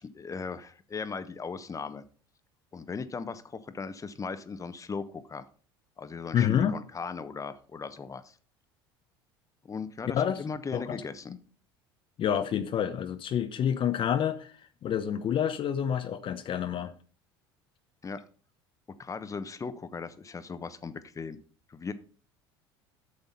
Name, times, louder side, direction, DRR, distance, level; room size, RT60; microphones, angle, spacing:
voice 1, 0.0-2.0 2.7-5.4 6.0-8.4 9.7-11.3 18.0-18.2 19.0-21.4 21.7-21.9, left 5 dB, 25° left, 1.1 m, -38 dB
voice 2, 6.3-6.7 10.1-10.4 10.7-11.0 12.2-16.9, left 9 dB, 45° left, 0.9 m, -28 dB
9.4 x 6.9 x 5.4 m
hypercardioid pair, 75°, 13 cm